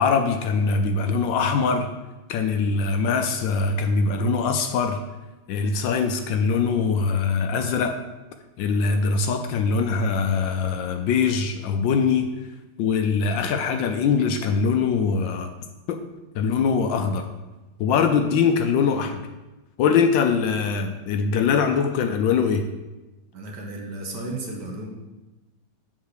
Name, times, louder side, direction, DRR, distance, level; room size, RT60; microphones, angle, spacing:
voice 1, 0.0-1.9 2.3-5.0 5.5-8.0 8.6-12.3 12.8-15.5 15.9-16.0 16.3-17.3 17.8-19.2 19.8-22.6, left 5 dB, 75° left, 6 dB, 1.2 m, -22 dB
voice 2, 23.3-24.9, right 2 dB, 60° right, 0 dB, 1.6 m, -34 dB
7.3 x 4.0 x 6.5 m, 1.1 s
omnidirectional pair, 2.2 m